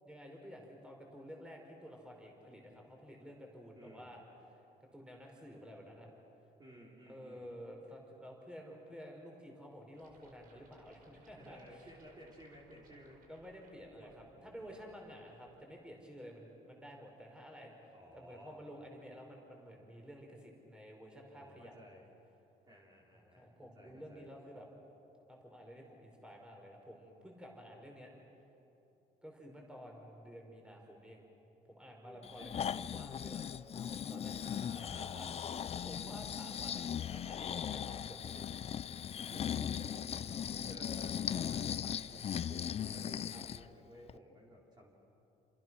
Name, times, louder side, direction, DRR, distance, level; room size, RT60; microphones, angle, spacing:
voice 1, 0.0-4.2 4.8-6.1 7.1-11.9 13.3-21.7 23.2-24.7 25.3-28.1 29.2-31.2 31.6-34.3 34.6-38.5 40.3-40.6 43.3-43.4, equal, 5° right, 0 dB, 4.9 m, -52 dB
voice 2, 3.7-4.1 6.6-7.5 11.4-13.2 14.0-14.1 14.6-15.0 17.9-18.6 21.3-22.1 22.7-24.3 32.0-33.1 34.1-36.1 39.2-44.9, equal, 25° right, -3 dB, 4.5 m, -56 dB
sound 1, 10.0-15.8, right 3 dB, 55° right, 4.5 m, -65 dB
Breathing, 32.2-43.7 44.1-44.2, left 9 dB, 40° left, 0.5 m, -38 dB
28.5 x 26.5 x 6.3 m, 2.9 s
cardioid pair, 110°, 17 cm